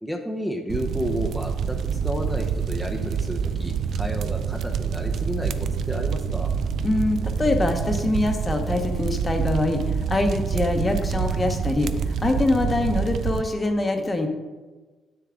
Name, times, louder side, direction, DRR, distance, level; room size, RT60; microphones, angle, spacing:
voice 1, 0.0-1.8 2.0-5.5 5.9-6.5, equal, ahead, 2 dB, 0.8 m, -31 dB
sound 1, 0.7-13.4, right 7 dB, 65° right, 0.4 m, -27 dB
voice 2, 6.8-11.9 12.2-14.3, left 2 dB, 25° left, 4 dB, 1.1 m, -24 dB
8.4 x 6.8 x 3.8 m, 1.3 s
cardioid pair, 90°, 0 cm